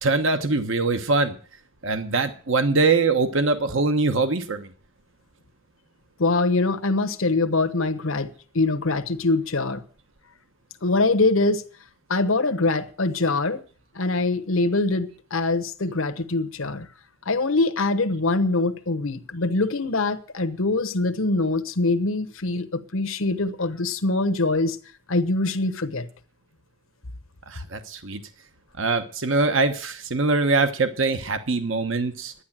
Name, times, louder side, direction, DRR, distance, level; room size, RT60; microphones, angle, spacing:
voice 1, 0.0-1.4 1.8-4.7 27.5-28.2 28.8-32.3, right 3 dB, 60° right, 1.1 m, -23 dB
voice 2, 6.2-8.3 8.5-9.8 10.8-11.6 12.1-13.6 13.9-16.9 17.2-24.8 25.1-26.1, left 2 dB, 70° left, 1.1 m, -23 dB
11.5 x 9.8 x 7.4 m
head